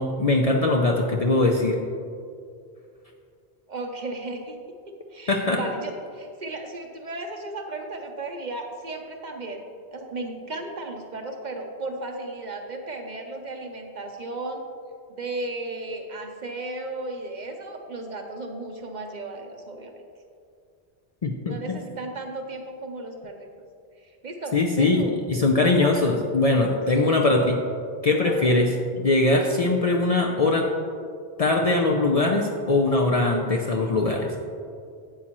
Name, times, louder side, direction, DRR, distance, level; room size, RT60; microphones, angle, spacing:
voice 1, 0.0-1.8 5.3-5.6 21.2-21.6 24.5-27.6 28.0-30.7 31.4-34.3, left 2 dB, 45° left, 1 dB, 0.5 m, -21 dB
voice 2, 3.7-4.6 5.1-9.6 9.9-14.6 15.1-19.9 21.5-23.5 24.0-25.2 25.6-26.1 26.9-27.3 28.2-28.6, right 2 dB, 50° right, 4 dB, 0.7 m, -35 dB
8.5 x 8.5 x 3.0 m, 2.3 s
omnidirectional pair, 1.1 m